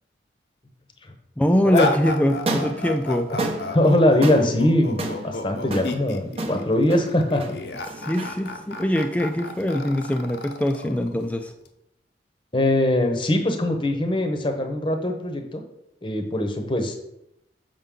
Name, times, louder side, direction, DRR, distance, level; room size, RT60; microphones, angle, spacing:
voice 1, 1.4-3.3 7.9-11.5, equal, 10° left, 6 dB, 0.3 m, -23 dB
sound 1, 1.7-11.7, left 2 dB, 65° left, 0.6 m, -32 dB
sound 2, 2.3-10.6, right 2 dB, 35° right, 0.7 m, -33 dB
voice 2, 3.7-7.6 12.5-15.6 16.0-16.9, left 1 dB, 25° left, 5 dB, 0.8 m, -22 dB
6.9 x 5.4 x 3.7 m, 0.84 s
head